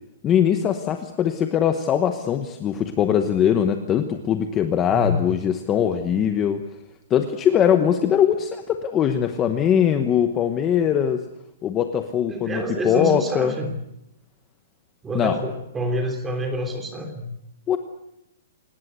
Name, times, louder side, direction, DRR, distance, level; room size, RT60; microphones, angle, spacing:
voice 1, 0.2-6.6 7.1-11.2 11.6-13.5 15.1-15.4 17.7-17.8, left 9 dB, 15° left, 7 dB, 1.0 m, -21 dB
voice 2, 4.9-5.2 12.3-13.7 15.0-17.3, equal, 10° right, 4 dB, 3.3 m, -27 dB
27.5 x 19.5 x 8.1 m, 0.84 s
hypercardioid pair, 180°, 0 cm